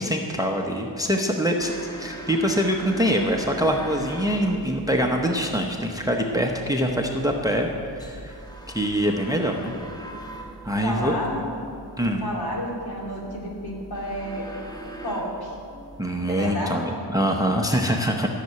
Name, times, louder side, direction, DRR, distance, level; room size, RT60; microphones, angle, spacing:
voice 1, 0.0-1.7 2.0-8.4 8.7-9.7 10.6-11.2 12.0-12.2 16.0-18.3, equal, 10° right, 2 dB, 0.8 m, -24 dB
sound 1, 1.6-16.0, right 2 dB, 10° left, 1.4 m, -40 dB
voice 2, 10.8-11.5 12.0-14.5 15.0-15.6 16.3-16.8, equal, 55° left, -2 dB, 3.0 m, -30 dB
13.5 x 6.7 x 9.2 m, 2.6 s
wide cardioid pair, 150°, 44 cm